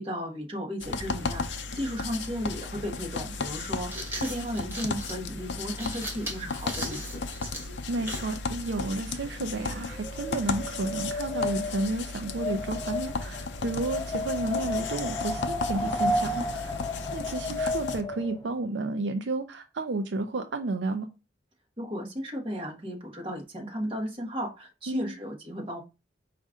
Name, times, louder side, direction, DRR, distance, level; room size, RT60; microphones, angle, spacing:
voice 1, 0.0-7.2 21.8-25.8, equal, 30° right, 1.4 m, -35 dB
sound 1, 0.8-18.0, left 4 dB, 80° left, 0.6 m, -35 dB
sound 2, 3.6-8.4, right 1 dB, 10° right, 1.1 m, -39 dB
voice 2, 7.9-16.8 17.1-21.1 24.9-25.2, right 2 dB, 80° right, 0.5 m, -32 dB
Wind, 9.3-18.5, left 1 dB, 20° left, 0.4 m, -33 dB
5.2 x 2.6 x 3.6 m
head